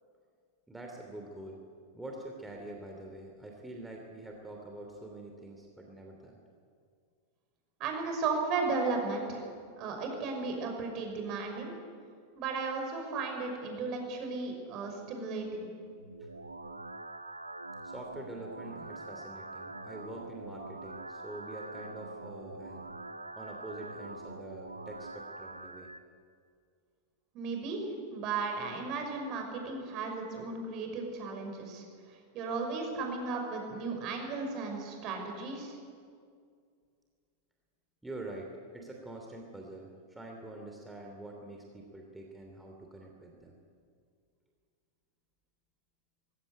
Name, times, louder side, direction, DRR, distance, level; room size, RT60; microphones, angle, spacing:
voice 1, 0.7-1.6 1.9-6.4 16.2-16.3 17.8-22.9 23.3-25.9 38.0-43.6, right 1 dB, 5° right, 0 dB, 2.9 m, -45 dB
voice 2, 7.8-9.4 9.8-11.7 12.3-15.7 27.3-27.8 28.1-35.8, right 4 dB, 40° right, 3 dB, 6.0 m, -35 dB
sound 1, 16.0-26.0, right 2 dB, 80° right, 1.1 m, -44 dB
21.5 x 17.0 x 9.7 m, 2.2 s
figure-of-eight pair, 90°, 0 cm